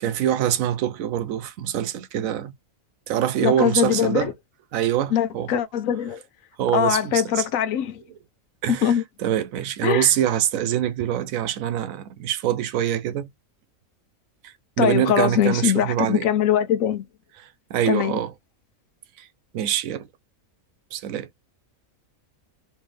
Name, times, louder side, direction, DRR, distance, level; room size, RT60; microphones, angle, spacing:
voice 1, 0.0-2.5 3.1-4.3 4.7-5.5 6.6-7.4 8.6-8.9 9.2-13.3 14.4-16.3 17.7-18.3 19.2-19.3 19.5-20.1 20.9-21.3, right 11 dB, 80° right, 1.0 m, -24 dB
voice 2, 3.4-4.3 5.1-6.2 6.7-8.0 8.8-9.0 9.8-10.1 14.8-17.0 17.9-18.2, left 9 dB, 75° left, 1.1 m, -22 dB
3.4 x 3.1 x 3.1 m
omnidirectional pair, 1.4 m